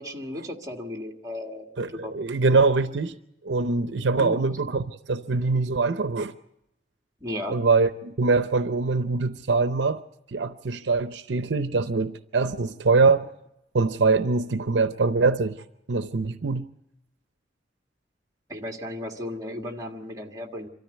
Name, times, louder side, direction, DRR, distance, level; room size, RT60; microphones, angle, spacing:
voice 1, 0.0-2.1 4.2-4.4 7.2-7.6 18.5-20.7, left 1 dB, 20° right, 1.7 m, -35 dB
voice 2, 1.8-3.2 3.4-6.3 7.5-10.0 10.3-13.3 13.7-16.7, right 4 dB, 70° right, 0.7 m, -23 dB
25.5 x 13.5 x 8.0 m
head